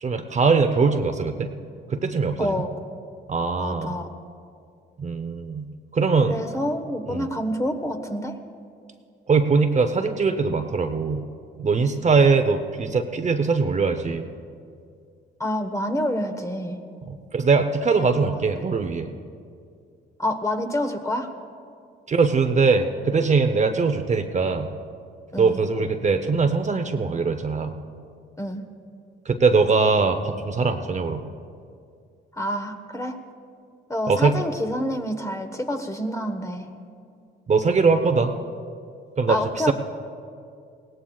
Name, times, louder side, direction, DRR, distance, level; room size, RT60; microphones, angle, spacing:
voice 1, 0.0-1.5 1.9-2.6 3.3-4.0 5.0-5.7 5.9-6.4 7.1-7.3 9.3-11.2 11.6-14.2 17.1-19.1 22.1-24.7 25.4-27.7 29.3-31.2 34.1-34.3 37.5-38.3 39.2-39.7, right 4 dB, 35° right, 7 dB, 0.8 m, -21 dB
voice 2, 2.4-2.7 3.6-4.1 6.2-8.4 15.4-16.8 18.3-18.5 20.2-21.3 25.3-25.6 28.4-28.6 32.4-33.2 33.9-36.7 39.3-39.7, left 1 dB, 15° left, 5 dB, 1.2 m, -27 dB
21.5 x 17.5 x 2.4 m, 2.3 s
cardioid pair, 90°, 20 cm